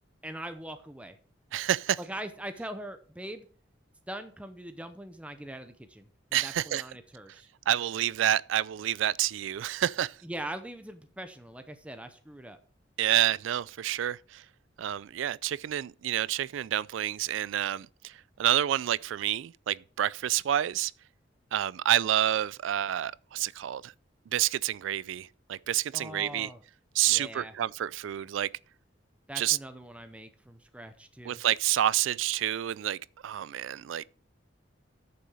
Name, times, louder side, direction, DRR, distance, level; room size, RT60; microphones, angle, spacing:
voice 1, 0.2-1.2 2.0-3.5 4.1-7.5 10.2-12.6 25.9-26.6 27.1-27.5 29.3-31.4, right 1 dB, 5° right, 0.7 m, -42 dB
voice 2, 1.5-2.0 6.3-6.8 7.7-10.2 13.0-14.4 14.8-18.1 18.4-20.9 21.5-23.9 24.3-26.5 27.0-28.5 29.3-29.6 31.3-34.1, right 12 dB, 80° right, 0.3 m, -28 dB
9.4 x 6.9 x 4.9 m
head